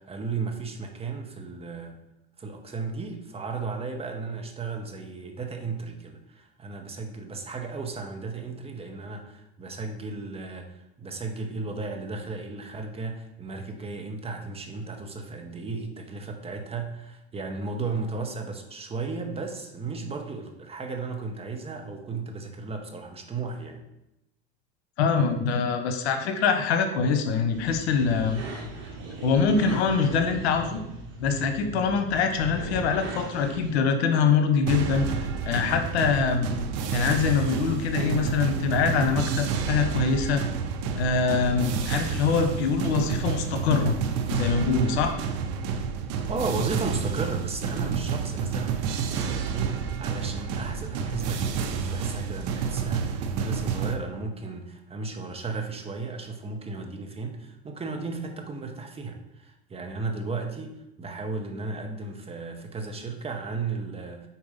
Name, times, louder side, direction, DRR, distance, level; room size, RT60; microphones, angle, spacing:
voice 1, 0.0-2.0 2.4-23.8 46.3-64.3, right 4 dB, 20° right, 4 dB, 0.8 m, -34 dB
voice 2, 25.0-28.4 29.2-30.8 31.2-35.1 35.4-36.5 36.9-40.4 40.9-44.0 44.3-45.2, left 5 dB, 80° left, 6 dB, 1.1 m, -24 dB
sound 1, 27.5-33.7, right 2 dB, 35° right, 2.1 m, -38 dB
sound 2, 34.7-54.0, right 6 dB, 50° right, 0.8 m, -29 dB
4.8 x 4.3 x 5.4 m, 0.88 s
supercardioid pair, 115°, 32 cm